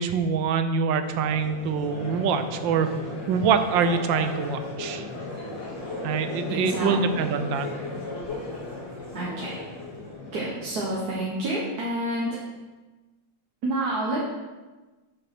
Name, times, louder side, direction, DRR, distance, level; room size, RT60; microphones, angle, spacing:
voice 1, 0.0-2.9 3.3-5.1 6.0-7.7, right 6 dB, 80° right, 9 dB, 1.4 m, -25 dB
Crowd, 1.0-11.2, left 2 dB, 75° left, 2.6 m, -36 dB
voice 2, 6.5-7.0 9.1-9.6 10.3-12.4 13.6-14.2, right 1 dB, 55° right, -4 dB, 1.7 m, -28 dB
6.4 x 6.4 x 5.9 m, 1.2 s
omnidirectional pair, 2.0 m